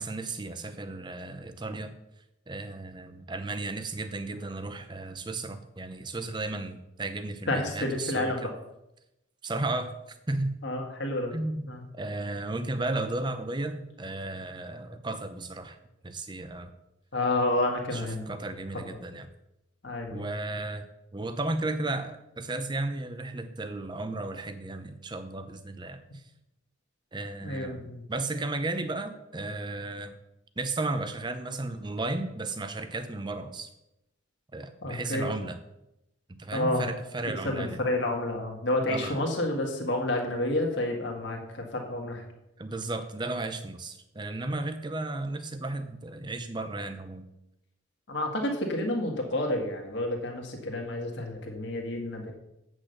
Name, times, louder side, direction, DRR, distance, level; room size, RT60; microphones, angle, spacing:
voice 1, 0.0-1.9 2.5-8.5 9.4-9.9 10.3-10.5 11.3-15.8 16.0-16.7 17.9-19.3 20.1-20.8 21.1-26.2 27.1-30.1 30.6-33.7 34.5-35.6 36.3-37.8 38.9-39.2 42.6-47.3, right 2 dB, 20° right, 10 dB, 0.6 m, -34 dB
voice 2, 7.5-8.5 10.6-11.3 11.7-11.8 17.1-18.3 19.8-20.2 27.4-28.0 34.8-35.3 36.5-36.9 37.4-42.2 48.1-52.3, left 1 dB, 55° left, 1 dB, 1.7 m, -29 dB
8.3 x 6.3 x 6.5 m, 0.89 s
head